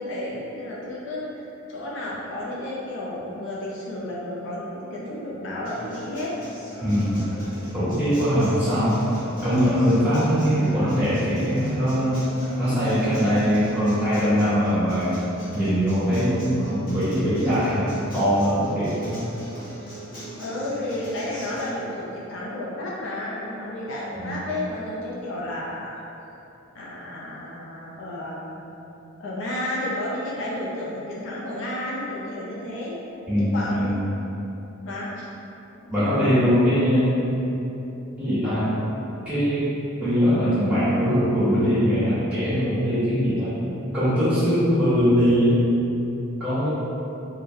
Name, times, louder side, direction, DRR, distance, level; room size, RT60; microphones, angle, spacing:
voice 1, 0.0-6.4 20.4-26.0 26.7-28.7 29.2-33.9 34.9-35.3 36.0-36.4, left 1 dB, 60° left, -6 dB, 0.4 m, -32 dB
Acoustic guitar, 5.6-21.7, equal, 45° left, 0.8 m, -39 dB
voice 2, 6.8-7.3 7.7-9.0 9.4-12.3 12.6-15.1 15.5-19.1 24.1-24.3 33.3-34.0 35.9-37.2 38.2-38.7 39.2-39.7 40.0-43.5 43.9-45.6 46.4-46.7, equal, 5° right, -15 dB, 1.3 m, -21 dB
3.8 x 2.1 x 2.6 m, 2.9 s
head